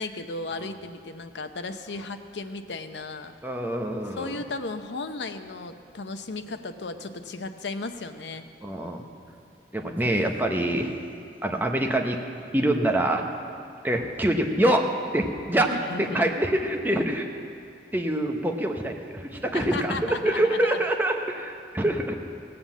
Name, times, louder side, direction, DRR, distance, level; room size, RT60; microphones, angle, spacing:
voice 1, 0.0-3.3 4.2-8.4 15.7-16.3 19.5-20.8, left 3 dB, 80° left, 8 dB, 0.7 m, -35 dB
voice 2, 3.4-4.4 8.6-9.0 9.7-10.9 11.4-12.2 12.5-13.2 13.8-14.9 15.1-17.3 17.9-20.0 20.2-22.2, right 1 dB, 10° right, 3 dB, 0.9 m, -25 dB
16.5 x 7.7 x 7.2 m, 2.4 s
head